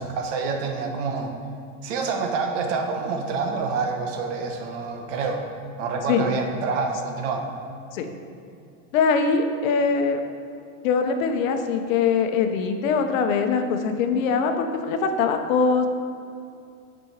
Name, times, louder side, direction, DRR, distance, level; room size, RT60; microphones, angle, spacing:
voice 1, 0.0-1.3 1.8-5.4 5.8-7.5, right 4 dB, 60° right, 4 dB, 1.2 m, -27 dB
voice 2, 8.9-10.2 10.8-15.9, left 5 dB, 70° left, 6 dB, 0.9 m, -22 dB
9.4 x 5.3 x 4.6 m, 2.5 s
supercardioid pair, 165°, 41 cm